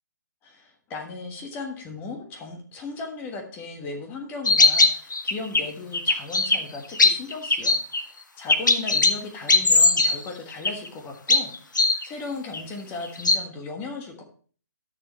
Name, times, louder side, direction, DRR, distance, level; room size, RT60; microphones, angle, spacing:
voice 1, 0.4-14.2, left 3 dB, 20° left, 3 dB, 1.4 m, -37 dB
sound 1, 4.5-5.6 5.9-6.6 6.9-8.0 8.5-9.1 9.5-10.2 10.5-10.9 11.3-12.0 12.5-12.6 13.0-13.4, left 3 dB, 85° left, 1.0 m, -18 dB
11.5 x 6.8 x 3.1 m, 0.43 s
figure-of-eight pair, 145°, 10 cm